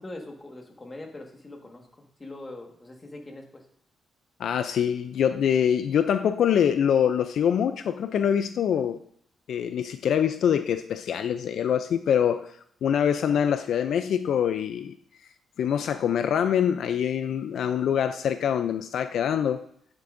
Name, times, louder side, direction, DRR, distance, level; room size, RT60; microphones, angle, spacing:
voice 1, 0.0-3.6, left 2 dB, 20° left, 2 dB, 1.5 m, -42 dB
voice 2, 4.4-9.0 9.5-12.5 12.8-14.9 15.6-19.6, left 8 dB, 70° left, 10 dB, 0.4 m, -24 dB
9.6 x 8.2 x 2.6 m, 0.66 s
cardioid pair, 120°, 0 cm